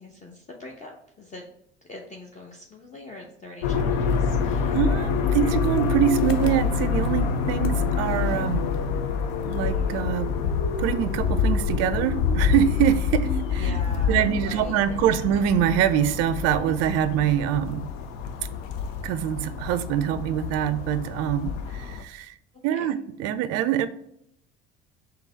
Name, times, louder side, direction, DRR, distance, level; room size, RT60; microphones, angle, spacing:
voice 1, 0.0-1.5 1.9-4.8 13.6-15.2 22.7-22.9, left 1 dB, 25° left, 0 dB, 0.7 m, -43 dB
sound 1, 3.6-22.0, left 5 dB, 70° left, 0.5 m, -26 dB
voice 2, 4.7-8.6 9.5-10.3 10.8-13.7 14.1-17.9 19.0-22.3 22.6-23.9, right 10 dB, 55° right, 13 dB, 0.4 m, -24 dB
sound 2, 8.3-17.2, left 2 dB, 45° left, 1.1 m, -38 dB
3.8 x 2.7 x 3.8 m, 0.73 s
hypercardioid pair, 60°, 31 cm